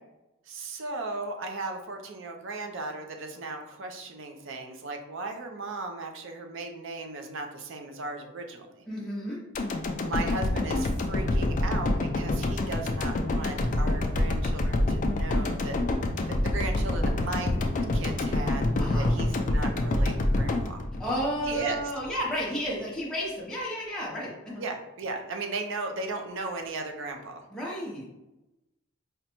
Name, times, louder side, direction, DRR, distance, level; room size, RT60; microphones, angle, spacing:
voice 1, 0.5-8.8 10.0-15.8 16.3-17.6 17.9-18.7 18.9-20.8 21.4-21.8 24.6-27.4, right 3 dB, 55° right, 4 dB, 0.5 m, -36 dB
voice 2, 8.9-9.4 18.8-19.1 21.0-24.6 27.5-28.1, equal, 5° left, -6 dB, 0.7 m, -32 dB
sound 1, 9.5-21.8 22.1-22.2, left 1 dB, 35° left, 0.3 m, -27 dB
5.0 x 2.2 x 2.9 m, 0.96 s
head